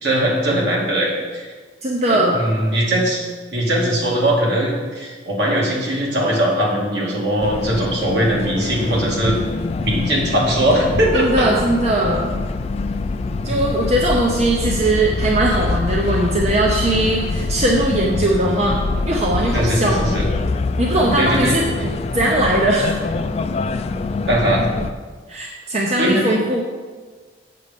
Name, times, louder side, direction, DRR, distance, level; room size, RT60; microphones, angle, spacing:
voice 1, 0.0-1.5 2.1-9.3 9.8-11.5 13.3-13.5 19.5-20.3 21.2-21.6 24.3-24.6 26.0-26.4, right 1 dB, 70° right, -3 dB, 2.2 m, -20 dB
voice 2, 1.8-2.4 11.1-12.3 13.4-20.0 20.8-21.6 22.1-22.9 25.3-26.6, right 1 dB, 35° right, -1 dB, 0.8 m, -19 dB
sound 1, 7.4-24.9, left 3 dB, 35° left, 0.3 m, -24 dB
7.7 x 6.3 x 5.2 m, 1.5 s
head